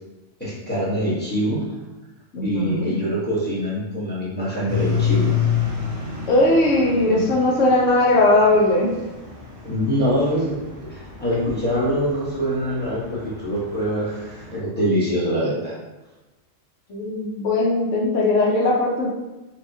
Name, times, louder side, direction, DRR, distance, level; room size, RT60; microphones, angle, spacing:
voice 1, 0.4-1.6 2.4-5.3 7.0-7.3 9.6-10.5 10.9-15.7, equal, 10° left, -9 dB, 1.0 m, -24 dB
voice 2, 2.3-2.9 6.3-8.9 16.9-19.1, left 2 dB, 70° left, -3 dB, 1.1 m, -19 dB
sound 1, 4.7-14.6, left 7 dB, 40° right, 0.5 m, -29 dB
4.4 x 2.3 x 2.7 m, 1.1 s
omnidirectional pair, 1.4 m